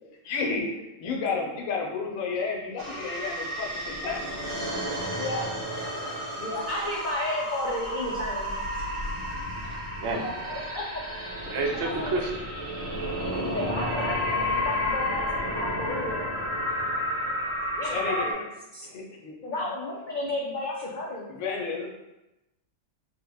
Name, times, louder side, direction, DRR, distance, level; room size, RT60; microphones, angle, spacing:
voice 1, 0.2-0.7 1.0-4.2 17.9-18.4 18.8-19.3 21.3-21.9, left 4 dB, 80° left, 0 dB, 1.0 m, -31 dB
sound 1, 2.8-18.3, equal, 85° right, 1.3 m, -31 dB
voice 2, 5.2-5.5 6.4-8.5 10.5-10.8 11.8-12.2 13.4-14.2 14.6-16.2 17.8-18.4 18.7-18.9 19.4-21.3, left 1 dB, 65° left, -4 dB, 0.5 m, -32 dB
voice 3, 9.6-10.6 11.5-12.3, right 3 dB, 65° right, 1 dB, 0.8 m, -30 dB
3.2 x 2.1 x 3.3 m, 0.97 s
omnidirectional pair, 1.3 m